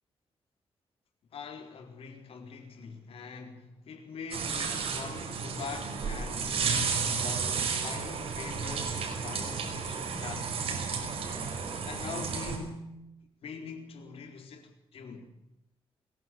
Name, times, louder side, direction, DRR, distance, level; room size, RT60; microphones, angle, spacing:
voice 1, 1.3-7.6 7.8-10.7 11.8-13.0 13.4-15.3, left 5 dB, 75° left, 4.2 m, -43 dB
sound 1, 4.3-12.6, right 5 dB, 80° right, 5.5 m, -32 dB
22.0 x 19.5 x 7.8 m
cardioid pair, 115°, 10 cm